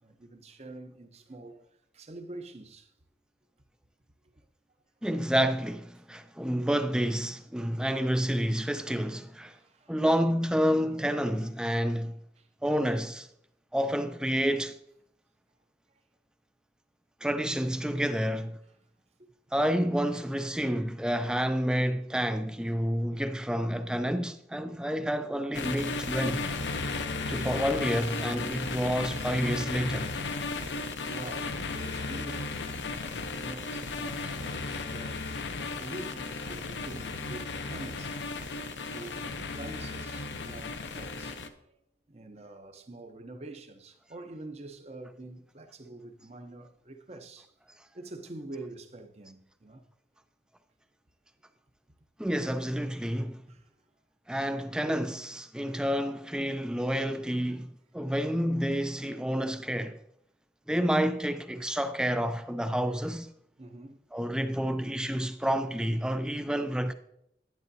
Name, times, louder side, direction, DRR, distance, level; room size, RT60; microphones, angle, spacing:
voice 1, 0.0-2.9 9.5-10.0 12.4-12.5 19.2-19.3 20.1-20.2 30.4-32.6 32.9-38.4 38.7-41.8 42.1-47.5 47.9-49.8 53.5-53.7 59.7-59.8 63.6-64.0, right 2 dB, 35° right, 0.7 m, -46 dB
voice 2, 5.0-9.6 9.9-12.2 12.6-13.3 13.7-14.8 17.2-18.6 19.5-26.4 27.3-30.1 52.2-53.4 54.3-60.0 60.7-63.3 64.1-66.9, equal, 5° right, 0.3 m, -29 dB
sound 1, 25.5-41.5, left 3 dB, 90° left, 0.7 m, -35 dB
10.5 x 9.7 x 2.7 m
head